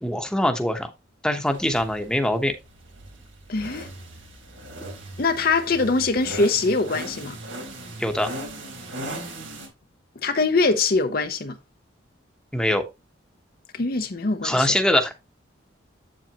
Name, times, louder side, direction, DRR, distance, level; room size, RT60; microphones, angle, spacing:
voice 1, 0.0-0.9 1.2-2.5 8.0-8.3 12.5-12.9 14.4-15.1, left 1 dB, 5° left, 1.0 m, -23 dB
sound 1, 1.5-9.7, right 1 dB, 85° right, 3.8 m, -38 dB
voice 2, 3.5-3.9 5.2-7.4 10.2-11.6 13.7-14.7, left 3 dB, 50° left, 0.7 m, -23 dB
8.2 x 7.6 x 2.9 m
head